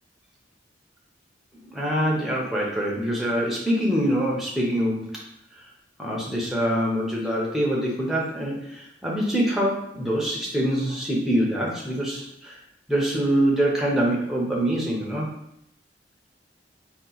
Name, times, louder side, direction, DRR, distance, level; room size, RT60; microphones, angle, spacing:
voice 1, 1.6-5.2 5.6-5.7 6.0-12.6 12.9-15.3, right 1 dB, ahead, -3 dB, 0.6 m, -25 dB
2.8 x 2.2 x 3.8 m, 0.78 s
head